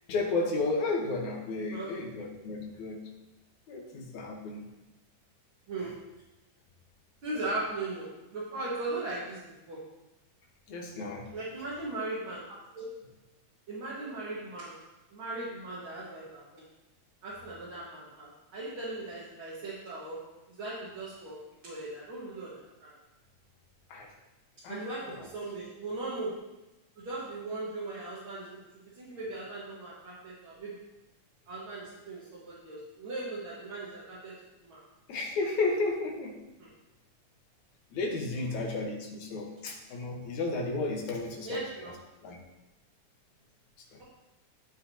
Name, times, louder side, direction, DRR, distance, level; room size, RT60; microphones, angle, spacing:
voice 1, 0.1-3.0 3.7-4.7 10.7-11.3 23.9-24.1 24.6-25.3 35.1-36.4 37.9-41.9 42.2-42.4 43.9-44.0, left 3 dB, 75° left, 0 dB, 2.6 m, -33 dB
voice 2, 5.7-6.0 7.2-9.9 11.3-12.9 13.7-14.8 15.1-16.6 17.2-21.4 21.6-22.9 24.7-26.4 27.0-30.8 31.5-34.3 34.6-34.8 36.6-36.7 38.5-38.6 41.4-42.0, right 2 dB, 50° right, -8 dB, 2.2 m, -38 dB
14.5 x 5.1 x 2.8 m, 1.0 s
omnidirectional pair, 3.4 m